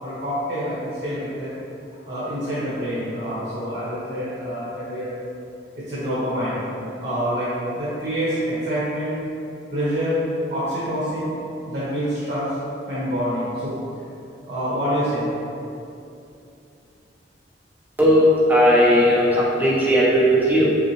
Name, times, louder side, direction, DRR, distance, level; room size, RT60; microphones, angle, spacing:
voice 1, 0.0-1.5 1.9-5.2 5.7-6.6 7.0-7.5 7.7-9.1 9.7-10.2 10.5-11.4 11.6-12.5 12.9-13.8 14.5-15.3, equal, 40° right, -11 dB, 1.1 m, -26 dB
voice 2, 18.5-20.7, equal, 10° right, -8 dB, 0.8 m, -17 dB
5.5 x 2.1 x 3.2 m, 2.7 s
head